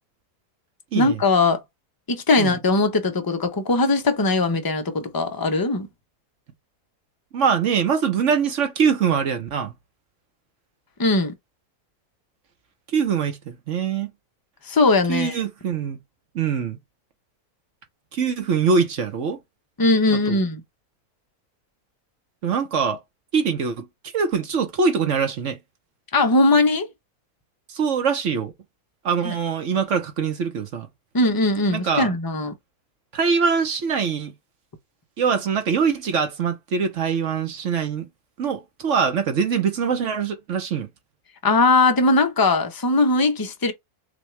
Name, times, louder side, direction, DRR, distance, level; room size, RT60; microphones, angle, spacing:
voice 1, 0.9-1.6 2.1-5.9 11.0-11.3 14.7-15.3 19.8-20.6 26.1-26.9 29.2-29.3 31.1-32.5 41.4-43.7, left 2 dB, 35° left, 0.3 m, -20 dB
voice 2, 7.3-9.7 12.9-14.1 15.1-16.0 16.3-16.8 18.1-19.4 20.3-20.4 22.4-23.0 23.3-23.9 24.1-25.6 27.7-28.5 29.0-30.9 31.7-32.1 33.1-34.3 35.2-38.1 38.4-40.9, right 6 dB, 55° right, 1.1 m, -23 dB
6.3 x 2.3 x 3.2 m
omnidirectional pair, 1.6 m